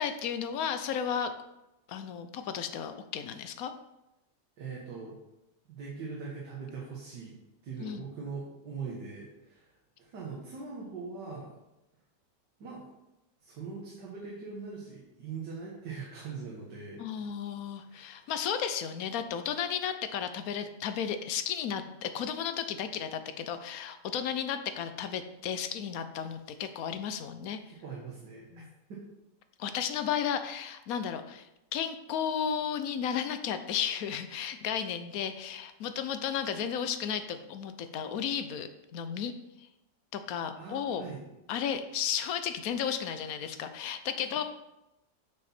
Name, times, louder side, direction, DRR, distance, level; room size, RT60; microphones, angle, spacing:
voice 1, 0.0-1.3 1.9-3.7 7.8-8.1 17.0-27.6 28.5-28.7 29.6-39.3 39.6-39.7 40.1-41.0 41.5-44.4, left 8 dB, 65° left, 9 dB, 1.0 m, -34 dB
voice 2, 4.6-5.2 5.7-7.4 7.6-9.7 10.0-11.5 12.6-12.9 13.4-17.3 17.9-18.3 27.6-28.6 28.9-29.0 40.5-41.2, right 5 dB, 80° right, -4 dB, 2.0 m, -41 dB
7.8 x 6.0 x 4.3 m, 0.93 s
omnidirectional pair, 1.8 m